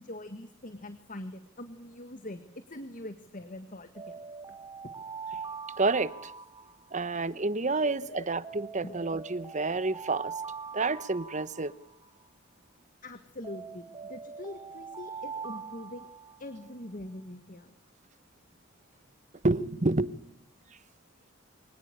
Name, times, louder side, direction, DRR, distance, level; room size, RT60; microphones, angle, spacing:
voice 1, 0.0-4.6 5.3-5.4 8.0-8.3 8.8-9.0 13.0-16.1 16.4-17.7, left 1 dB, 40° left, 1.7 m, -43 dB
Alarm, 3.9-7.3 8.4-12.3 13.4-16.7, right 5 dB, 20° right, 1.7 m, -43 dB
voice 2, 5.8-6.3 6.9-10.3 10.7-11.7 19.4-20.2, right 3 dB, 35° right, 1.1 m, -29 dB
24.5 x 19.5 x 8.2 m
head